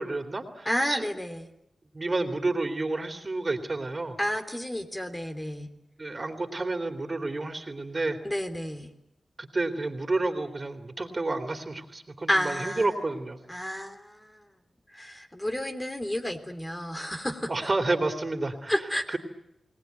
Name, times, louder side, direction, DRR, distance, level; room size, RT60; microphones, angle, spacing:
voice 1, 0.0-1.0 1.9-4.2 6.0-8.2 9.4-13.4 17.5-18.7 19.1-19.2, right 2 dB, 40° right, 7 dB, 3.3 m, -30 dB
voice 2, 0.6-1.5 4.2-5.7 8.2-8.9 12.3-12.9 13.5-14.4 14.9-17.5 18.7-19.2, equal, 20° left, 7 dB, 3.3 m, -31 dB
29.0 x 19.0 x 9.5 m, 0.83 s
cardioid pair, 50°, 0 cm